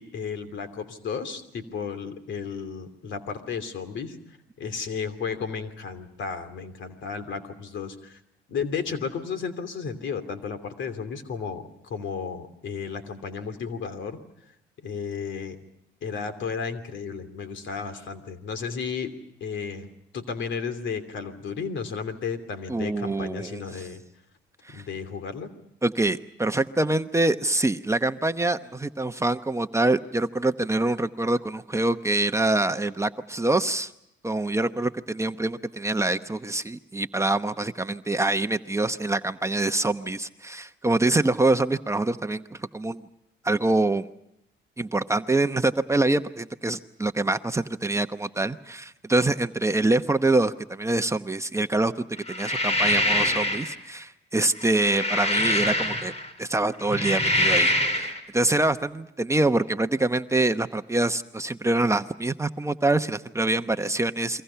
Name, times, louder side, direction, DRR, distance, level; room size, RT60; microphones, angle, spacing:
voice 1, 0.0-4.2 4.6-8.2 8.5-14.2 14.8-15.6 16.0-19.1 19.4-19.9 20.1-24.0 24.7-25.5, left 6 dB, 70° left, 9 dB, 2.9 m, -33 dB
voice 2, 22.7-23.8 24.6-24.8 25.8-33.9 34.2-43.1 43.4-44.1 44.8-56.1 56.4-64.4, right 2 dB, 15° right, 8 dB, 0.9 m, -25 dB
sound 1, 52.3-53.7 54.6-56.3 56.8-58.2, left 1 dB, 35° left, 4.2 m, -24 dB
30.0 x 23.5 x 5.7 m, 0.81 s
cardioid pair, 90°, 20 cm